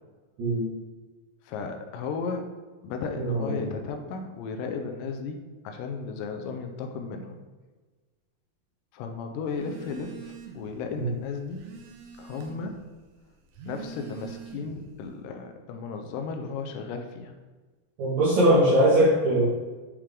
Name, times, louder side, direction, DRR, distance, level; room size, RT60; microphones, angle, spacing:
voice 1, 0.4-0.7 3.2-3.7 11.0-11.1 18.0-19.5, right 1 dB, 55° right, -10 dB, 2.5 m, -21 dB
voice 2, 1.4-2.5 2.8-5.4 5.6-7.4 8.9-11.6 12.2-12.8 13.7-17.3, left 5 dB, 85° left, 5 dB, 2.0 m, -34 dB
Telephone, 9.5-10.8 11.1-12.8 13.4-14.9, right 5 dB, 80° right, 1.8 m, -44 dB
7.3 x 4.9 x 3.5 m, 1.3 s
omnidirectional pair, 4.5 m